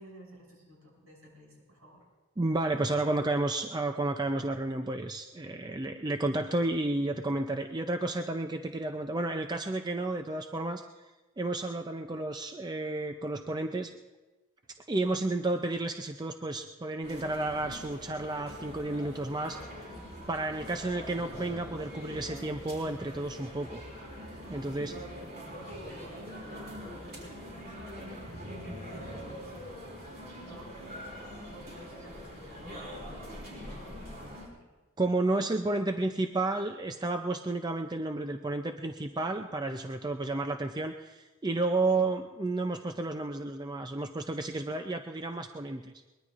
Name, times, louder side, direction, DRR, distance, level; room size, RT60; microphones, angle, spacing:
voice 1, 0.0-2.0 25.6-29.8 30.3-34.6 41.9-42.1, equal, 70° right, -3 dB, 7.1 m, -50 dB
voice 2, 2.4-10.8 11.4-13.9 14.9-19.6 20.3-23.8 24.5-25.0 35.0-45.9, right 2 dB, 20° right, 5 dB, 0.4 m, -31 dB
sound 1, 17.0-34.5, equal, 45° right, 4.2 m, -44 dB
23.0 x 21.0 x 2.5 m, 1.2 s
head